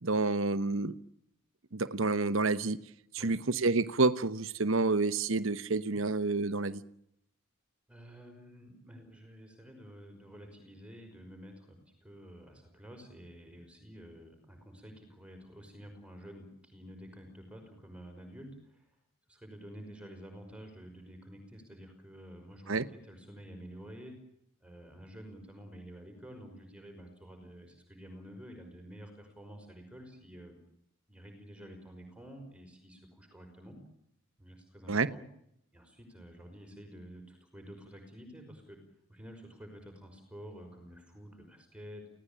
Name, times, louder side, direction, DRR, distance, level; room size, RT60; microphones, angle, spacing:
voice 1, 0.0-0.9 1.7-2.8 3.1-6.8 22.7-22.9 34.9-35.1, right 3 dB, 65° right, 1.1 m, -29 dB
voice 2, 7.9-19.0 19.3-24.2 24.6-30.6 31.1-33.8 34.4-35.2 35.7-38.8 39.1-42.1, equal, 5° right, 5.5 m, -50 dB
29.0 x 17.5 x 8.8 m
head